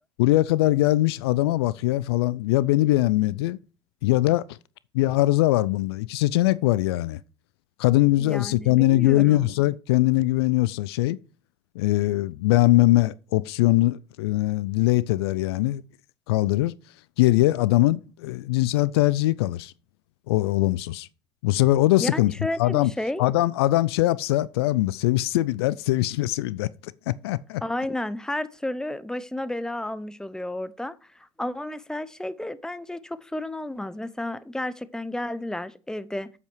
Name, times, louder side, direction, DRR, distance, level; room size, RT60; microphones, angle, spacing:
voice 1, 0.2-3.6 4.0-4.4 4.9-7.2 7.8-11.2 11.8-15.8 16.3-16.8 17.2-19.7 20.3-21.1 21.4-22.3 22.6-22.9 23.2-26.7 27.1-27.6, left 17 dB, 75° left, 0.4 m, -21 dB
voice 2, 8.2-9.5 22.0-23.3 27.6-30.9 31.4-36.3, left 1 dB, 5° left, 0.8 m, -32 dB
8.2 x 7.3 x 4.6 m
hypercardioid pair, 65°, 13 cm